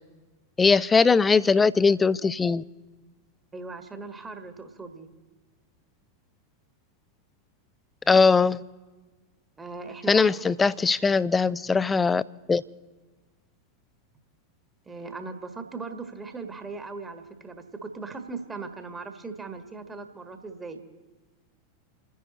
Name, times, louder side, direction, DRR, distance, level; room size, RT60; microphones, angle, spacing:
voice 1, 0.6-2.6 8.1-8.6 10.1-12.2 12.5-12.6, left 4 dB, 15° left, 19 dB, 0.5 m, -20 dB
voice 2, 3.5-5.1 9.6-10.5 14.8-20.8, right 4 dB, 15° right, 7 dB, 1.5 m, -39 dB
29.5 x 10.5 x 3.9 m, 1.3 s
figure-of-eight pair, 90°, 0 cm